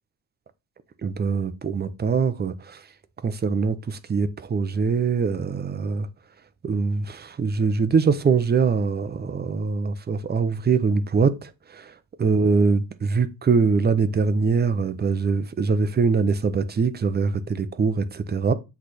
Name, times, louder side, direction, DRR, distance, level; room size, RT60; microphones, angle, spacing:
voice 1, 1.0-2.8 3.2-6.1 6.6-18.5, right 5 dB, 30° right, 0.5 m, -23 dB
8.2 x 3.2 x 4.2 m
wide cardioid pair, 165°, 36 cm